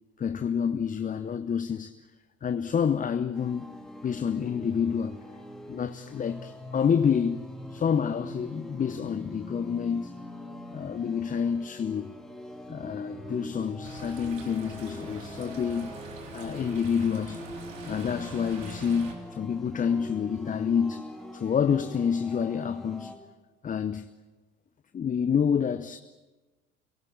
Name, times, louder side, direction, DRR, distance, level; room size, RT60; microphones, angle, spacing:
voice 1, 0.2-2.0 2.4-3.7 4.0-5.2 5.7-7.4 7.7-10.1 10.7-12.1 12.7-15.9 16.3-17.4 17.8-21.0 21.3-23.1 23.6-24.1 24.9-26.0, left 7 dB, 20° left, 0.8 m, -28 dB
sound 1, 3.3-23.1, left 1 dB, ahead, 3.4 m, -43 dB
sound 2, 13.8-19.1, right 4 dB, 70° right, 3.7 m, -44 dB
27.5 x 17.5 x 8.8 m
figure-of-eight pair, 70°, 39 cm